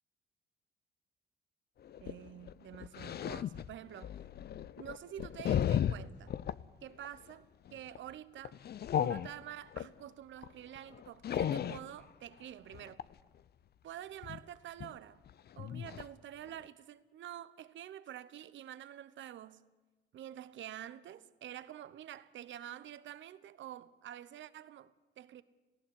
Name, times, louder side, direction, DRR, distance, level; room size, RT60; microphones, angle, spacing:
sound 1, 1.9-6.6 7.0-7.3 7.7-8.0 8.4-9.9 10.4-10.5 10.8-11.9 12.7-13.1 14.2-14.4 14.8-14.9 15.3-15.4 15.6-16.1 16.5-16.6, left 10 dB, 55° left, 0.6 m, -35 dB
voice 1, 2.0-4.1 4.8-6.3 6.8-8.6 8.9-13.0 13.8-15.2 15.6-19.7 20.1-25.4, right 11 dB, 70° right, 1.0 m, -48 dB
19.0 x 15.5 x 9.6 m
cardioid pair, 90°, 20 cm